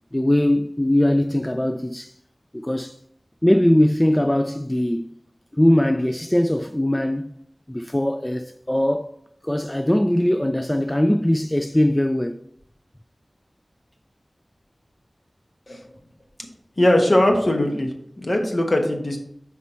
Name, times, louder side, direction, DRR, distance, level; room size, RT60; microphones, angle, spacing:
voice 1, 0.1-2.1 2.5-3.0 3.4-5.1 5.5-7.3 7.7-9.1 9.4-12.4, left 1 dB, 15° left, 0.3 m, -20 dB
voice 2, 16.8-17.9 18.2-19.2, left 1 dB, 50° left, 1.2 m, -19 dB
5.9 x 4.2 x 4.3 m
wide cardioid pair, 45°, 0 cm